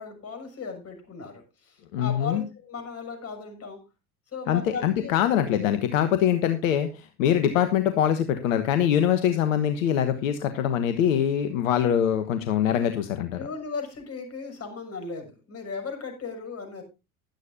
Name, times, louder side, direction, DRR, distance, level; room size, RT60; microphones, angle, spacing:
voice 1, 0.0-3.8 4.3-5.1 13.4-16.8, left 5 dB, 35° left, 5 dB, 6.5 m, -36 dB
voice 2, 1.9-2.4 4.5-13.5, left 9 dB, 65° left, 10 dB, 1.3 m, -23 dB
16.0 x 11.5 x 2.6 m, 0.27 s
figure-of-eight pair, 65°, 42 cm